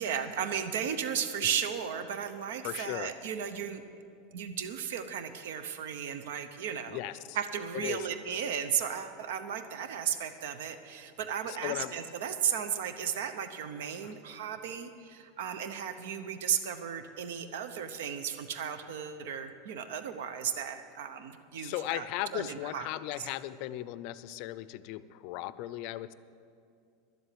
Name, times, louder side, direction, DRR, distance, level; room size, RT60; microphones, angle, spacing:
voice 1, 0.0-3.8 4.3-7.0 7.3-22.1 22.3-22.9 23.2-23.3, right 8 dB, 80° right, 10 dB, 0.8 m, -35 dB
voice 2, 2.6-3.1 6.9-7.4 7.7-8.1 11.4-11.9 14.0-14.1 21.6-26.1, left 15 dB, 50° left, 16 dB, 0.4 m, -37 dB
12.0 x 7.9 x 8.5 m, 2.5 s
supercardioid pair, 155°, 0 cm